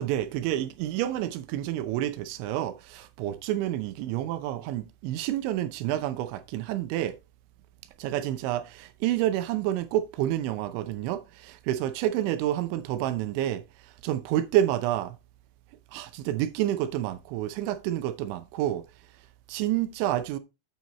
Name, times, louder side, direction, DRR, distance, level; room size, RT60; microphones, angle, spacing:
voice 1, 0.0-7.2 8.0-15.2 15.9-18.8 19.5-20.4, right 13 dB, 80° right, 2.9 m, -29 dB
8.9 x 8.5 x 3.0 m
omnidirectional pair, 5.5 m